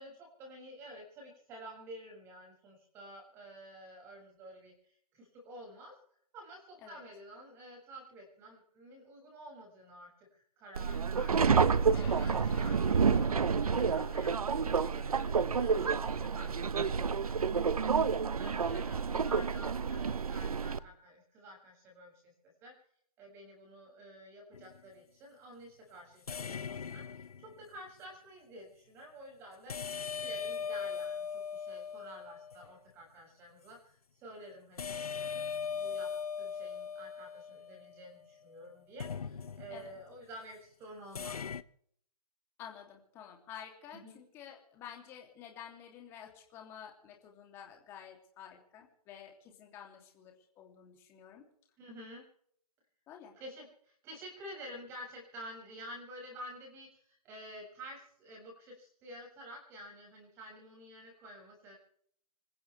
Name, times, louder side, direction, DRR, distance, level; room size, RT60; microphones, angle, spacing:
voice 1, 0.0-5.9 6.3-11.6 11.9-22.7 23.2-36.1 36.3-41.4 43.9-44.2 51.8-52.2 53.3-61.7, equal, 15° right, 0 dB, 6.9 m, -50 dB
Subway metro underground, 10.7-20.8, right 5 dB, 65° right, 1.2 m, -29 dB
sound 1, 11.9-20.9, left 6 dB, 40° left, 3.2 m, -53 dB
sound 2, 24.5-24.9 26.3-27.8 29.7-32.7 34.8-38.2 39.0-40.0 41.1-41.6, left 6 dB, 70° left, 1.0 m, -39 dB
voice 2, 42.6-51.5 53.1-53.3, left 9 dB, 10° left, 2 dB, 3.0 m, -51 dB
27.5 x 15.0 x 3.5 m, 0.64 s
hypercardioid pair, 165°, 20 cm